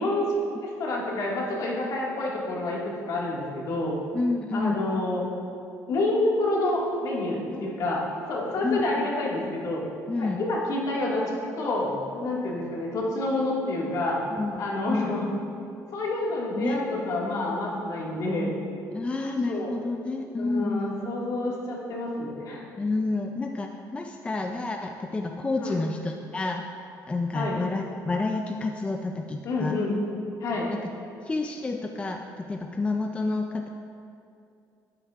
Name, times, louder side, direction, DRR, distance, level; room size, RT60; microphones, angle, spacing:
voice 1, 0.0-4.0 4.5-5.3 5.9-9.8 10.2-11.3 11.6-14.2 14.6-15.3 15.9-18.5 19.5-19.7 20.4-22.6 25.6-25.8 27.3-27.6 29.4-30.0 30.4-30.7, left 2 dB, 60° left, -3 dB, 1.9 m, -28 dB
voice 2, 4.1-4.8 7.5-7.6 8.6-9.1 10.1-10.4 14.4-15.1 16.5-16.8 18.9-21.1 22.8-26.6 27.1-29.8 30.7-30.8 31.2-33.7, left 3 dB, 15° left, 3 dB, 0.4 m, -29 dB
11.5 x 8.8 x 2.4 m, 2.5 s
cardioid pair, 120°, 7 cm